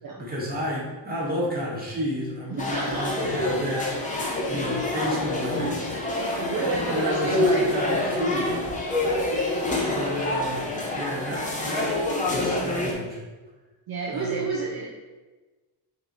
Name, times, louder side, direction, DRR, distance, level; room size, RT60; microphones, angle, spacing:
voice 1, 0.2-3.9 4.2-5.8 6.5-8.6 9.8-10.6 10.9-11.9 12.3-13.2 14.1-14.4, equal, 20° right, -6 dB, 1.3 m, -31 dB
voice 2, 2.5-3.2 6.4-7.7 9.0-9.1 13.9-14.9, right 4 dB, 55° right, -2 dB, 0.6 m, -29 dB
sound 1, 2.6-12.9, left 2 dB, 15° left, 0.5 m, -27 dB
3.8 x 3.0 x 3.9 m, 1.2 s
wide cardioid pair, 155°, 45 cm